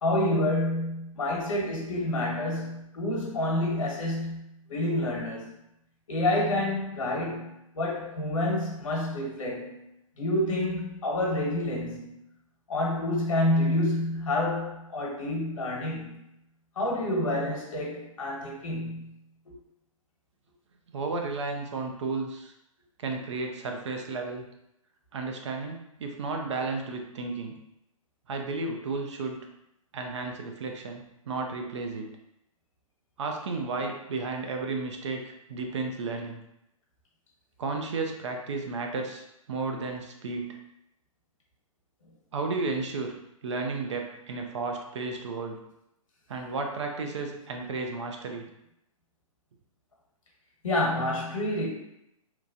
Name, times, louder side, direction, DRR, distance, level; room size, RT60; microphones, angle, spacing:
voice 1, 0.0-5.5 6.1-9.8 10.2-12.1 12.7-16.2 16.8-19.1 19.4-19.5 50.6-51.7, left 1 dB, 65° left, -2 dB, 1.2 m, -28 dB
voice 2, 20.9-22.5 23.0-24.4 25.1-27.5 28.3-29.4 29.9-32.1 33.2-36.4 37.6-40.6 42.3-43.1 43.4-45.6 46.3-48.5, right 3 dB, 55° right, 3 dB, 0.5 m, -33 dB
3.0 x 2.2 x 2.6 m, 0.83 s
figure-of-eight pair, 120°, 18 cm